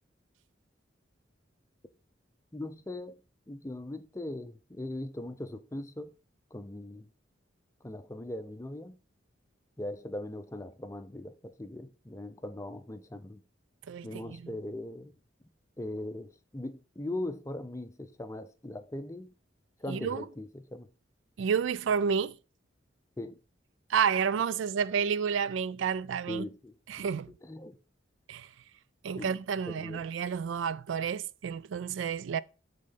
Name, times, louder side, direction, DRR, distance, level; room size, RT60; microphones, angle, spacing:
voice 1, 2.5-3.2 3.5-6.1 6.5-7.1 7.8-9.0 9.8-13.4 14.0-15.1 15.8-19.3 19.8-20.9 23.2-23.4 26.3-26.7 27.4-27.8 29.2-29.3 29.7-30.0, left 1 dB, 15° left, 0.5 m, -40 dB
voice 2, 13.9-14.5 19.9-20.2 21.4-22.4 23.9-26.5 26.9-27.3 28.3-28.5 29.0-32.4, right 7 dB, 85° right, 0.4 m, -30 dB
7.6 x 3.8 x 5.2 m
head